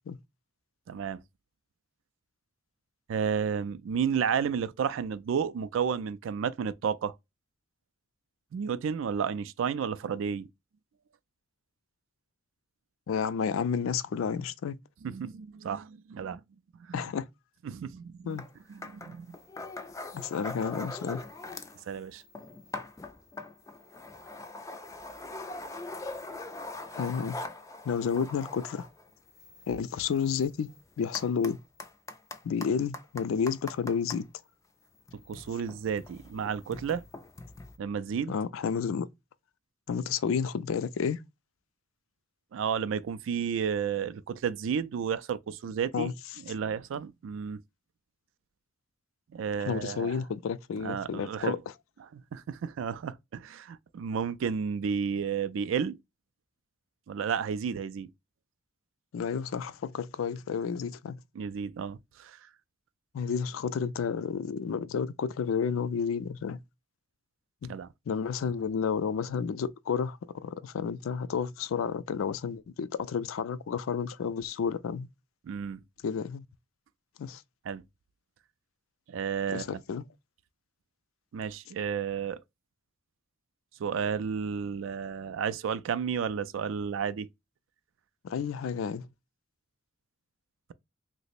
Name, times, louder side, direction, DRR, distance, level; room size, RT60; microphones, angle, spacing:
voice 1, 0.9-1.2 3.1-7.1 8.5-10.5 15.0-16.4 16.8-17.0 17.6-18.4 18.7-19.4 21.9-22.2 35.3-37.0 37.8-38.4 42.5-46.1 46.4-47.6 49.3-50.2 50.8-51.6 52.0-56.0 57.1-58.1 61.4-62.4 67.6-67.9 75.4-75.8 77.6-77.8 79.1-79.8 81.3-82.4 83.8-87.3, right 7 dB, 70° right, 0.3 m, -32 dB
voice 2, 13.1-14.8 16.9-17.2 18.2-18.4 20.1-21.2 27.0-27.4 27.8-28.9 29.7-30.7 31.0-31.6 32.4-34.3 38.3-39.1 39.9-41.2 45.9-46.1 49.7-51.6 59.1-61.2 63.1-66.6 67.6-67.7 68.1-75.1 76.0-76.4 77.2-77.4 79.5-80.0 88.2-89.1, left 6 dB, 90° left, 0.4 m, -31 dB
sound 1, 18.4-18.5 18.8-21.8 22.1-34.2 35.0-37.8, left 2 dB, 15° left, 0.3 m, -42 dB
2.9 x 2.0 x 4.0 m
head